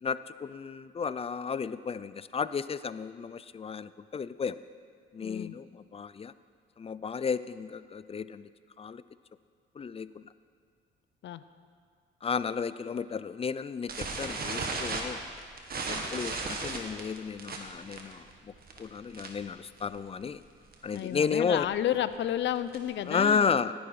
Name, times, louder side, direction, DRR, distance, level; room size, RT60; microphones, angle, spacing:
voice 1, 0.0-4.6 5.1-6.3 6.8-8.5 8.8-9.0 9.8-10.3 12.2-15.2 15.7-18.5 18.8-20.4 20.8-21.7 23.1-23.7, left 6 dB, 30° left, 15 dB, 0.5 m, -33 dB
voice 2, 5.2-5.6 11.2-11.4 20.9-23.5, left 11 dB, 70° left, 13 dB, 0.7 m, -31 dB
sound 1, 13.9-19.5 19.8-20.1 20.3-20.4 20.7-21.0 21.5-23.0, right 3 dB, 50° right, 1.9 m, -36 dB
18.0 x 10.5 x 4.9 m, 2.1 s
cardioid pair, 90°, 20 cm